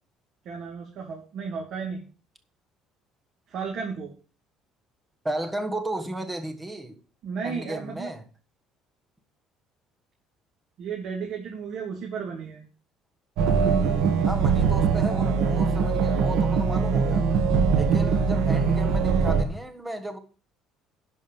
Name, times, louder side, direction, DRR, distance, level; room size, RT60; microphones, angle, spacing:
voice 1, 0.4-2.0 3.5-4.1 7.2-8.1 10.8-12.7, right 6 dB, 50° right, 2.6 m, -34 dB
voice 2, 5.2-7.0 7.4-8.2 14.3-17.3 17.7-20.2, right 1 dB, 10° right, 1.4 m, -34 dB
sound 1, 13.4-19.4, right 5 dB, 70° right, 1.9 m, -22 dB
11.5 x 5.2 x 7.6 m
cardioid pair, 170°, 0 cm